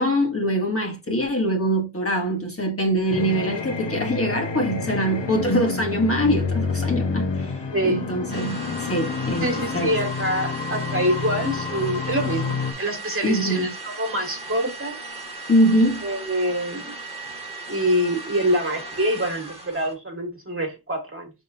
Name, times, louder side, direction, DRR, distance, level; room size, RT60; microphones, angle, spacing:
voice 1, 0.0-7.5 7.8-9.5 9.7-9.9 13.2-13.7 15.5-16.1, equal, 30° left, 1.2 m, -23 dB
sound 1, 3.1-12.7, left 4 dB, 75° left, 1.0 m, -28 dB
voice 2, 7.7-8.1 9.4-15.0 16.0-16.9 17.7-21.3, equal, 30° right, 1.5 m, -25 dB
sound 2, 8.3-19.9, right 2 dB, 15° right, 1.4 m, -37 dB
5.3 x 3.6 x 2.7 m
wide cardioid pair, 105°, 43 cm